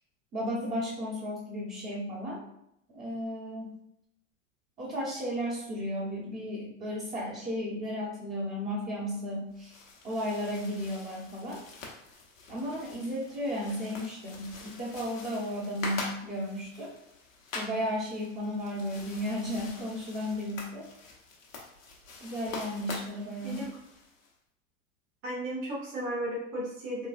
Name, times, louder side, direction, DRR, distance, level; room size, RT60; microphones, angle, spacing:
voice 1, 0.3-2.4 2.9-3.7 4.8-9.8 10.0-11.6 12.5-16.9 17.5-20.9 22.2-23.7, equal, 25° right, -7 dB, 0.8 m, -34 dB
sound 1, 9.5-24.3, left 3 dB, 80° left, 0.9 m, -45 dB
voice 2, 25.2-27.1, right 1 dB, 75° right, -5 dB, 1.2 m, -34 dB
3.9 x 2.3 x 2.4 m, 0.78 s
hypercardioid pair, 90°, 39 cm